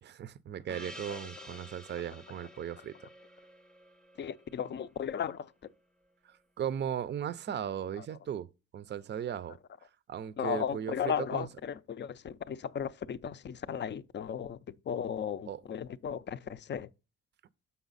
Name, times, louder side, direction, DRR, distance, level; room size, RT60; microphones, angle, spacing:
voice 1, 0.0-2.9 6.2-8.5 8.7-9.6 10.1-11.5 15.5-15.6, right 9 dB, 35° right, 0.5 m, -37 dB
Gong, 0.7-5.5, equal, ahead, 0.7 m, -51 dB
voice 2, 4.2-5.5 8.0-8.1 10.4-14.6 14.9-16.9, left 8 dB, 40° left, 0.5 m, -35 dB
7.1 x 5.6 x 3.9 m
cardioid pair, 90°, 30 cm